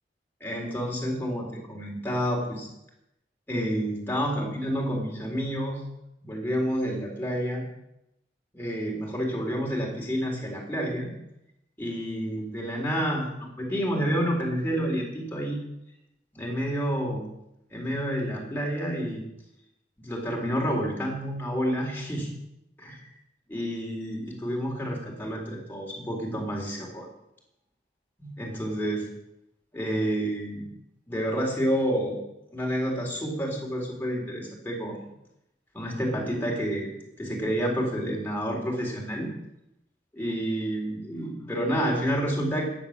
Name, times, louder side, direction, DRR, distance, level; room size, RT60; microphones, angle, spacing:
voice 1, 0.4-2.7 3.5-5.8 6.2-7.6 8.5-11.1 11.8-15.7 16.3-17.3 17.7-19.2 20.0-22.3 22.8-23.1 23.5-27.1 28.2-29.0 29.7-30.6 31.1-32.2 32.5-35.1 35.7-36.9 37.2-39.3 40.1-42.7, equal, 10° left, -2 dB, 3.9 m, -29 dB
15.0 x 10.5 x 7.4 m, 0.86 s
head